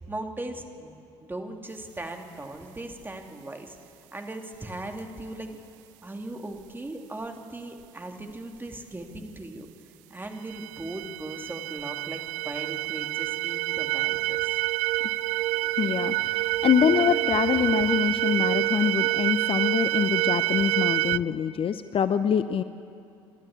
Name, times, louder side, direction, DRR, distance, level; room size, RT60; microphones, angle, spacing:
voice 1, 0.1-3.8 4.1-5.5 6.0-9.7 10.1-14.6, right 2 dB, 15° right, 3 dB, 2.8 m, -38 dB
sound 1, 4.5-4.7 5.4-5.6 6.4-6.5 7.3-7.4 8.2-8.3 9.1-9.3, left 2 dB, 80° left, 6.3 m, -55 dB
sound 2, 10.5-21.2, right 18 dB, 65° right, 0.4 m, -27 dB
voice 2, 15.8-22.6, left 8 dB, 40° left, 12 dB, 0.7 m, -25 dB
28.5 x 12.5 x 8.5 m, 2.5 s
hypercardioid pair, 60°, 14 cm